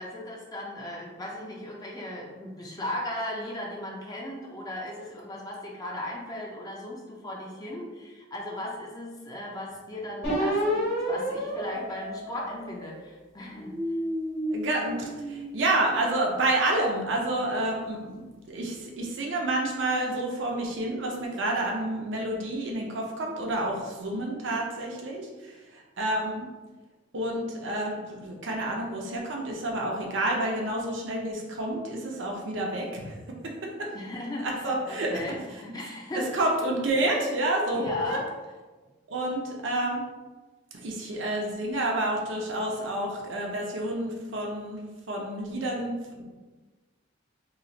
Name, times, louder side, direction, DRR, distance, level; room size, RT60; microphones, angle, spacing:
voice 1, 0.0-13.7 33.9-34.5 34.9-36.4 37.7-38.3, left 1 dB, 20° left, -3 dB, 0.5 m, -36 dB
sound 1, 10.2-12.9 13.5-16.0, equal, 55° left, 1.4 m, -31 dB
voice 2, 14.5-18.2 18.5-26.5 27.1-33.1 34.4-35.2 35.5-35.6 36.1-38.2 39.1-40.0 40.7-46.2, right 1 dB, 75° right, -1 dB, 0.7 m, -29 dB
3.0 x 2.4 x 3.9 m, 1.3 s
head